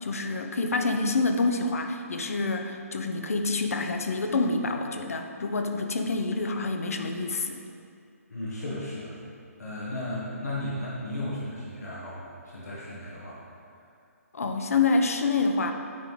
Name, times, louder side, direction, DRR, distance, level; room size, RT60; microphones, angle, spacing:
voice 1, 0.0-7.6 14.3-15.7, left 3 dB, 65° left, 5 dB, 0.6 m, -27 dB
voice 2, 8.3-9.2 9.6-13.4, left 1 dB, 85° left, -6 dB, 1.4 m, -35 dB
9.4 x 3.8 x 3.1 m, 2.5 s
figure-of-eight pair, 140°, 8 cm